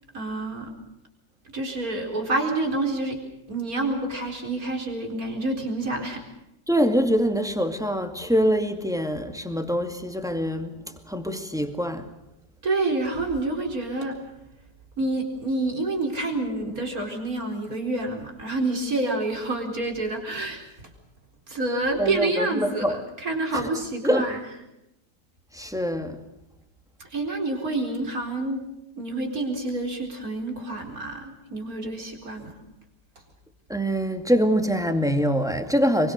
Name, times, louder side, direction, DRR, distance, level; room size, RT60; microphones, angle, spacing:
voice 1, 0.1-0.7 1.5-3.2 3.5-6.2 12.6-14.2 15.0-20.6 21.5-24.4 27.0-28.6 29.0-32.5, right 2 dB, 55° right, 4.6 m, -28 dB
voice 2, 6.7-10.8 11.1-12.1 22.0-23.0 23.5-23.6 24.0-24.3 25.5-26.2 33.7-36.1, equal, ahead, 2.0 m, -24 dB
25.0 x 23.5 x 6.6 m
omnidirectional pair, 1.9 m